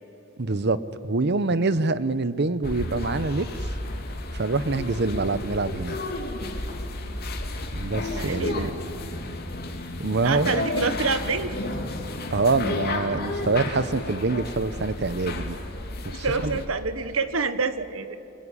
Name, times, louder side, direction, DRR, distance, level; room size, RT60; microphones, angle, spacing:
voice 1, 0.4-0.8 1.0-3.7 4.3-6.0 7.8-8.7 10.0-10.6 12.3-15.6 16.0-16.6, right 3 dB, 55° right, 15 dB, 0.9 m, -25 dB
sound 1, 2.6-16.7, left 2 dB, 50° left, 2.8 m, -32 dB
sound 2, 7.8-13.9, left 1 dB, 70° left, 3.4 m, -39 dB
voice 2, 8.1-8.7 10.2-11.5 16.2-18.2, right 4 dB, 90° right, 11 dB, 1.4 m, -27 dB
28.5 x 21.0 x 10.0 m, 2.9 s
head